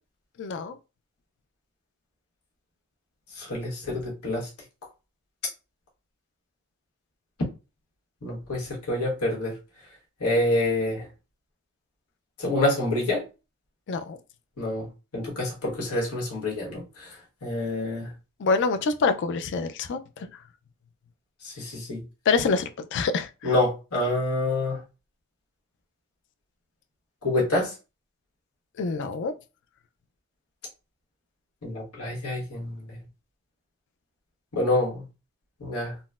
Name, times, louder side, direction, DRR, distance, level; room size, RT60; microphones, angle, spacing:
voice 1, 0.4-0.7 13.9-14.2 18.4-20.0 22.3-23.5 28.8-29.3, left 4 dB, 55° left, 0.4 m, -26 dB
voice 2, 3.4-4.5 8.2-9.5 10.2-11.0 12.4-13.2 14.6-14.9 15.1-16.8 17.4-18.1 21.4-22.0 23.4-24.8 27.2-27.7 31.6-33.0 34.5-35.0 35.6-35.9, left 2 dB, 90° left, 1.2 m, -27 dB
3.9 x 2.0 x 2.3 m
head